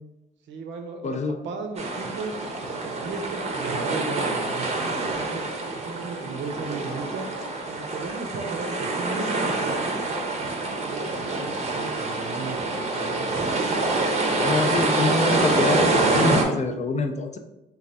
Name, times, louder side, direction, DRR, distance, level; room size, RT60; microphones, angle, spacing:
voice 1, 0.5-2.4 2.8-5.5 5.7-7.3 7.7-10.0 10.5-13.6, right 4 dB, 70° right, 5 dB, 0.6 m, -36 dB
voice 2, 1.0-1.4 14.4-17.4, left 3 dB, 35° left, 6 dB, 0.4 m, -25 dB
sound 1, 1.8-16.4, right 2 dB, 35° right, 0.7 m, -26 dB
3.3 x 2.3 x 4.0 m, 0.94 s
cardioid pair, 90°, 20 cm